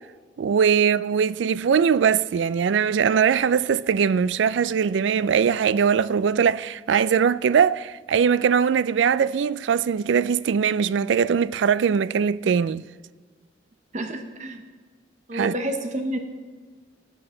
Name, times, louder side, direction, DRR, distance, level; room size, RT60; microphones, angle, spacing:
voice 1, 0.4-12.8 15.3-15.5, right 7 dB, 85° right, 0.4 m, -21 dB
voice 2, 13.9-14.6 15.3-16.2, right 1 dB, 40° right, 1.0 m, -29 dB
15.0 x 10.0 x 3.8 m
head